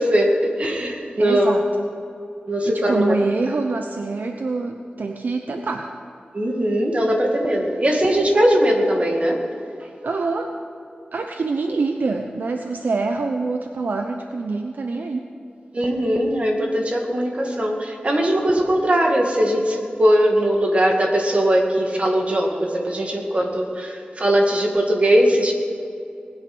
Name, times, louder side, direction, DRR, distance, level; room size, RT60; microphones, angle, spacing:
voice 1, 0.0-1.5 2.5-3.1 6.3-9.4 15.7-25.5, equal, 40° right, 1 dB, 2.2 m, -20 dB
voice 2, 1.2-1.9 2.6-5.9 10.0-10.5 11.1-15.3, right 3 dB, 65° right, 5 dB, 0.8 m, -25 dB
19.5 x 9.6 x 6.1 m, 2.7 s
wide cardioid pair, 110°, 3 cm